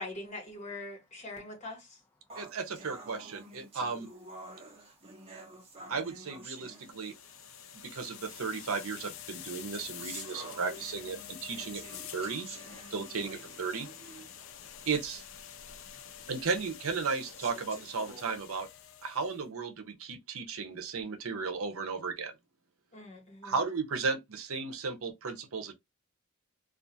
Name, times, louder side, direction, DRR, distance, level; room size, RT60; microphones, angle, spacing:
voice 1, 0.0-2.0 22.9-23.6, left 2 dB, 35° left, 1.3 m, -42 dB
sound 1, 2.3-7.4 8.3-8.4 9.2-14.5 14.9-15.0 15.5-15.6 16.3-16.4 17.1-18.3, right 2 dB, 30° right, 0.9 m, -49 dB
voice 2, 2.4-4.1 5.9-7.1 7.8-11.8 12.1-12.5 12.9-13.9 14.9-15.2 16.3-18.7 19.0-22.3 23.4-25.7, right 4 dB, 85° right, 0.7 m, -35 dB
voice 3, 4.4-5.9 6.7-8.0 11.9-13.1 14.2-14.9 15.5-16.3, left 1 dB, 10° left, 0.7 m, -67 dB
sound 2, 6.7-19.4, left 9 dB, 65° left, 0.4 m, -47 dB
2.4 x 2.4 x 2.6 m
head